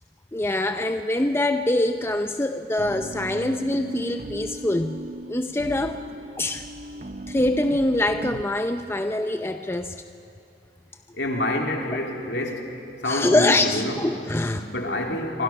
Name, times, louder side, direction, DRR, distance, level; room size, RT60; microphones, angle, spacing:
voice 1, 0.3-6.0 6.4-6.7 7.3-10.0 13.0-15.0, left 1 dB, 15° left, 7 dB, 0.5 m, -24 dB
sound 1, 2.8-8.4, right 1 dB, 40° right, 0.6 m, -36 dB
voice 2, 11.1-12.7 13.0-14.0 14.5-15.4, left 1 dB, 70° left, 1 dB, 2.8 m, -27 dB
27.0 x 23.5 x 5.8 m, 2.8 s
head